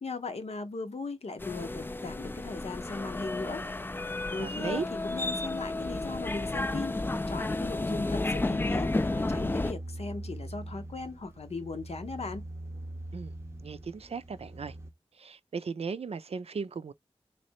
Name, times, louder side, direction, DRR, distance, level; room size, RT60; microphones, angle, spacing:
voice 1, 0.0-3.6 4.3-7.0 7.3-12.5, left 3 dB, 75° left, 0.8 m, -38 dB
sound 1, 1.4-9.7, left 2 dB, 20° left, 0.3 m, -32 dB
voice 2, 4.4-4.9 13.1-13.3 13.6-14.7 15.2-16.9, right 5 dB, 75° right, 0.4 m, -36 dB
sound 2, 8.0-14.9, right 1 dB, 25° right, 0.6 m, -43 dB
3.3 x 3.1 x 2.8 m
wide cardioid pair, 70°, 11 cm